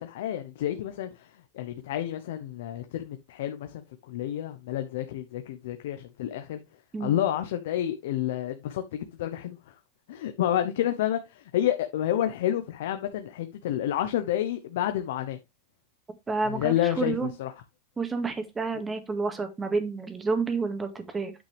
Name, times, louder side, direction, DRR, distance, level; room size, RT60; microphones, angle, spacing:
voice 1, 0.0-6.6 7.0-9.6 10.1-15.4 16.4-17.5, left 11 dB, 75° left, 0.9 m, -29 dB
voice 2, 16.3-17.3 18.0-21.3, right 4 dB, 15° right, 1.9 m, -29 dB
8.9 x 5.9 x 3.4 m
supercardioid pair, 120°, 0 cm